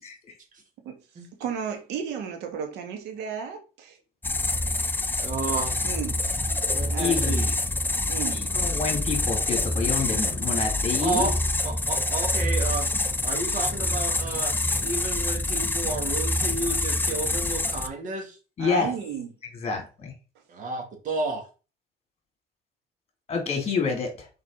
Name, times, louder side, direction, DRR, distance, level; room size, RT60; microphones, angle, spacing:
voice 1, 1.4-4.0 5.8-6.2 6.9-7.2 8.1-8.4 18.6-19.3, right 7 dB, 85° right, 1.8 m, -33 dB
sound 1, 4.2-17.9, left 2 dB, 10° left, 0.6 m, -26 dB
voice 2, 5.2-5.8 6.7-7.5 11.0-11.4 11.6-12.9 13.2-14.5 14.8-18.4 20.5-21.4, right 3 dB, 50° right, 2.5 m, -31 dB
voice 3, 7.0-7.4 8.3-11.3 18.6-18.9 19.5-20.1 23.3-24.3, left 5 dB, 40° left, 3.0 m, -28 dB
5.9 x 5.2 x 3.9 m
cardioid pair, 110°, 17 cm